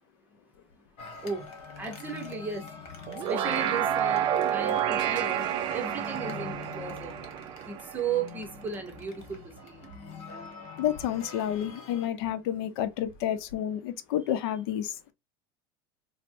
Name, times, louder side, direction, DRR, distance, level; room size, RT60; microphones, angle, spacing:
voice 1, 0.8-2.7 3.1-7.2 7.7-9.9, right 5 dB, 15° right, 0.8 m, -36 dB
sound 1, 1.0-12.1, left 5 dB, 50° left, 1.2 m, -44 dB
sound 2, 3.1-8.6, right 10 dB, 40° right, 0.4 m, -29 dB
voice 2, 10.8-15.1, left 10 dB, 80° left, 0.6 m, -30 dB
4.2 x 2.1 x 2.5 m
supercardioid pair, 145°, 13 cm